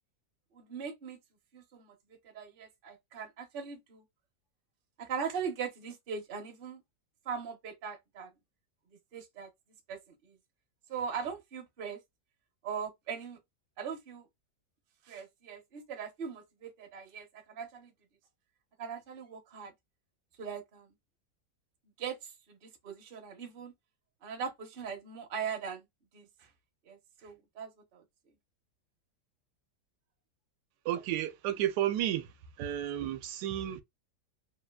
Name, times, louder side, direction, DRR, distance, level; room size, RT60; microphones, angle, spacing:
voice 1, 0.5-1.2 1.5-4.0 5.0-6.8 7.3-8.3 9.1-9.5 9.9-10.4 10.9-12.0 12.6-13.4 13.8-14.3 15.1-17.9 18.8-19.7 20.4-20.9 22.0-23.7 24.2-25.8 26.1-26.5 26.9-28.0, right 6 dB, 50° right, 0.7 m, -40 dB
voice 2, 30.8-32.3 32.6-33.8, right 12 dB, 85° right, 1.2 m, -32 dB
3.1 x 2.3 x 2.2 m
omnidirectional pair, 1.8 m